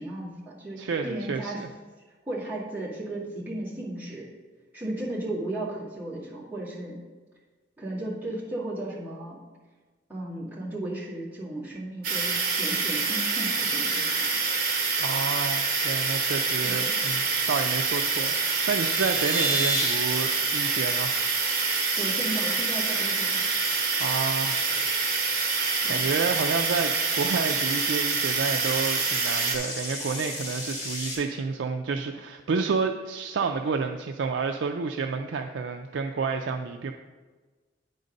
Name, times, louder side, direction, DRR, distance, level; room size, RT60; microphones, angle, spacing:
voice 1, 0.0-1.6 2.3-4.3 4.7-6.9 7.8-9.4 10.1-14.4 16.6-17.0 22.0-23.4 25.8-26.0, right 1 dB, 10° right, -8 dB, 2.0 m, -35 dB
voice 2, 0.8-1.7 15.0-21.1 24.0-24.6 25.9-36.9, right 5 dB, 75° right, 4 dB, 0.4 m, -30 dB
sound 1, 12.0-29.6, right 4 dB, 50° right, 1.2 m, -26 dB
sound 2, 18.3-20.0 20.3-20.6 20.9-21.0 21.4-21.6 22.0-22.4 22.8-31.1, equal, 35° left, 2.5 m, -34 dB
9.5 x 4.0 x 5.1 m, 1.3 s
head